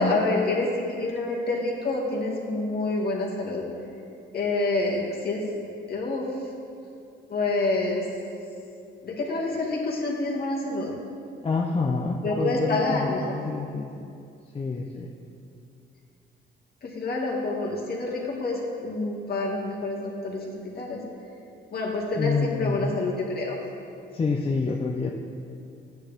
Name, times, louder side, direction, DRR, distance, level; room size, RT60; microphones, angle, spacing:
voice 1, 0.0-3.6 4.3-5.4 5.9-6.5 7.3-8.1 9.0-10.9 12.2-13.4 16.8-21.0 21.7-23.6, left 2 dB, 50° left, -2 dB, 2.1 m, -27 dB
voice 2, 11.4-14.0 14.5-15.1 22.1-22.9 24.1-25.1, left 4 dB, 30° left, -1 dB, 0.6 m, -27 dB
11.5 x 9.2 x 3.6 m, 2.5 s
cardioid pair, 90°, 20 cm